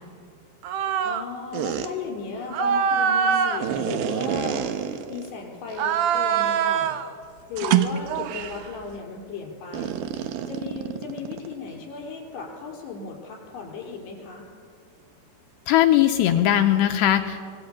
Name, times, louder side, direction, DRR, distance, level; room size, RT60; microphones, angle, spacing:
sound 1, 0.6-1.3 1.5-1.9 2.5-5.3 5.7-7.1 7.6-8.6 9.7-11.5, right 8 dB, 85° right, 2.0 m, -25 dB
voice 1, 1.0-7.0 7.5-10.0 10.5-14.5, left 5 dB, 55° left, 1 dB, 6.1 m, -36 dB
voice 2, 15.7-17.4, left 12 dB, 80° left, 6 dB, 2.4 m, -19 dB
26.0 x 20.5 x 8.8 m, 2.3 s
omnidirectional pair, 5.9 m